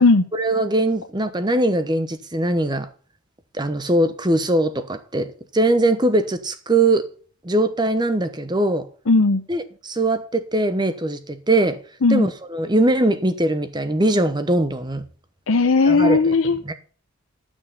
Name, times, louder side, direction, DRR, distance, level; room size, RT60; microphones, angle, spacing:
voice 1, 0.3-2.9 3.5-5.3 5.5-7.1 7.4-8.9 9.5-11.8 12.1-15.0 15.9-16.7, right 1 dB, 20° right, 0.9 m, -21 dB
voice 2, 9.1-9.4 12.0-12.3 15.5-16.6, left 3 dB, 70° left, 0.7 m, -16 dB
12.0 x 6.3 x 5.4 m
head